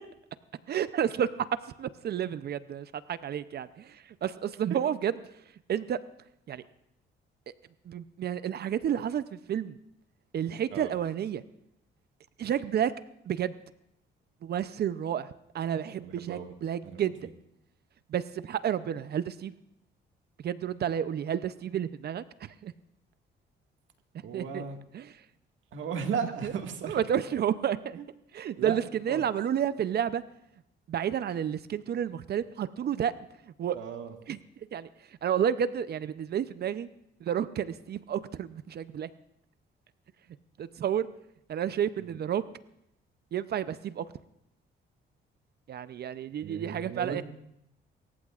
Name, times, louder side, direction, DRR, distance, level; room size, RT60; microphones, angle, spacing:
voice 1, 0.7-1.5 1.8-5.4 5.7-6.0 6.5-6.6 7.8-9.8 10.3-11.4 12.4-12.9 13.3-13.6 14.4-17.3 18.1-19.5 20.4-22.7 24.3-24.6 24.9-25.3 26.4-26.5 26.8-28.0 28.3-30.2 30.9-33.1 33.4-33.8 34.3-34.4 34.7-36.9 37.2-39.1 40.6-41.1 41.5-42.4 43.3-44.1 45.7-47.2, right 9 dB, 55° right, 14 dB, 0.6 m, -31 dB
voice 2, 16.0-16.5 16.8-17.1 24.2-24.8 25.7-27.0 28.6-28.8 29.1-29.2 33.7-34.1 46.4-47.2, right 6 dB, 75° right, 4 dB, 1.9 m, -35 dB
25.5 x 14.5 x 2.4 m, 0.80 s
cardioid pair, 90°, 20 cm